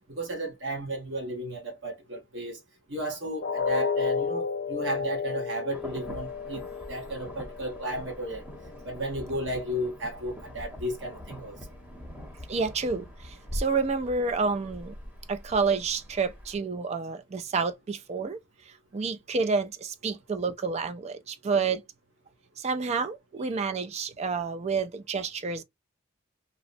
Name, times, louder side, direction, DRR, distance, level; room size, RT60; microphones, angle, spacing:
voice 1, 0.1-2.6 2.9-6.6 6.9-8.4 8.8-11.6, right 1 dB, 65° right, 1.1 m, -34 dB
sound 1, 3.4-9.4 9.8-10.0 10.4-10.5, left 5 dB, 55° left, 0.6 m, -33 dB
Insect / Thunder / Rain, 5.7-16.6, equal, 5° right, 0.9 m, -43 dB
voice 2, 12.5-14.9 15.3-18.4 18.7-21.8 22.6-25.6, right 4 dB, 35° right, 0.3 m, -29 dB
2.8 x 2.0 x 2.5 m
head